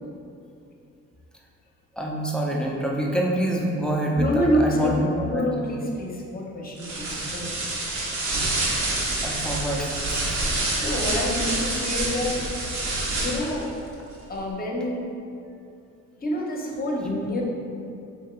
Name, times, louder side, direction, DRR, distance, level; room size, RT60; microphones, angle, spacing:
voice 1, 1.9-5.4 5.7-5.8 7.8-7.9 9.2-9.9, right 1 dB, 5° left, -2 dB, 0.6 m, -26 dB
voice 2, 4.1-4.9 5.2-7.6 10.5-12.4 13.0-13.7 14.3-15.1 16.2-17.4, left 1 dB, 30° left, -1 dB, 0.8 m, -27 dB
sound 1, 6.8-13.6, right 2 dB, 70° right, 0.9 m, -27 dB
3.6 x 2.9 x 4.3 m, 2.6 s
cardioid pair, 90°, 30 cm